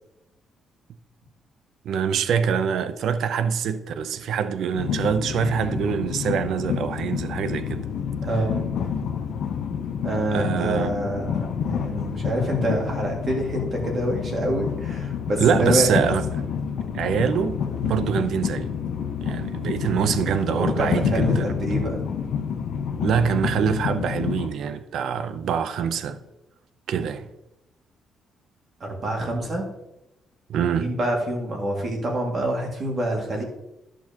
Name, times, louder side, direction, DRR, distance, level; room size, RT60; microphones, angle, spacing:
voice 1, 1.8-7.9 10.3-10.9 15.4-16.3 16.9-18.7 19.2-21.5 23.0-26.2 26.9-27.3 30.5-30.9, right 7 dB, 60° right, 0.5 m, -24 dB
Train, 4.7-24.5, left 7 dB, 60° left, 0.9 m, -28 dB
voice 2, 8.2-8.6 10.0-15.9 20.5-22.0 28.8-29.7 30.8-33.4, right 1 dB, 35° right, 2.1 m, -26 dB
13.5 x 6.2 x 2.9 m
cardioid pair, 180°, 0 cm